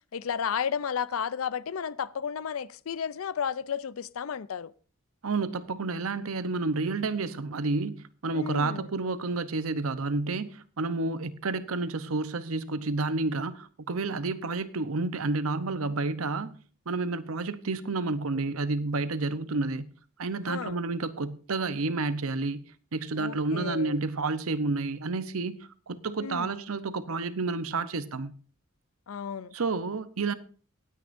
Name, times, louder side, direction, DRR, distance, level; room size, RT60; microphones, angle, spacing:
voice 1, 0.1-4.7 8.3-8.9 20.5-20.8 23.2-24.0 26.2-26.5 29.1-29.5, left 7 dB, 70° left, 0.5 m, -33 dB
voice 2, 5.2-16.6 16.9-19.8 20.2-22.6 22.9-25.6 25.9-28.3 29.5-30.3, right 3 dB, 75° right, 0.8 m, -30 dB
17.5 x 9.5 x 2.6 m
head